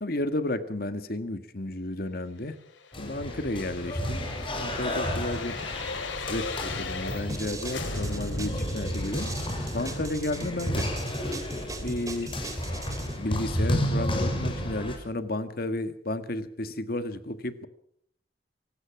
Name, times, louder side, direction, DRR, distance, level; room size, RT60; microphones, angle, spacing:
voice 1, 0.0-2.6 3.0-4.3 4.5-5.6 6.1-9.3 9.7-10.9 11.8-12.3 13.2-17.7, left 1 dB, 50° left, 11 dB, 1.7 m, -32 dB
sound 1, 2.7-7.4 7.7-12.6 12.9-13.0, left 3 dB, 85° left, 2.9 m, -38 dB
sound 2, 2.9-15.0, equal, 30° left, 6.0 m, -32 dB
sound 3, 7.3-13.2, right 2 dB, 20° right, 2.9 m, -39 dB
25.0 x 17.5 x 6.0 m, 0.65 s
head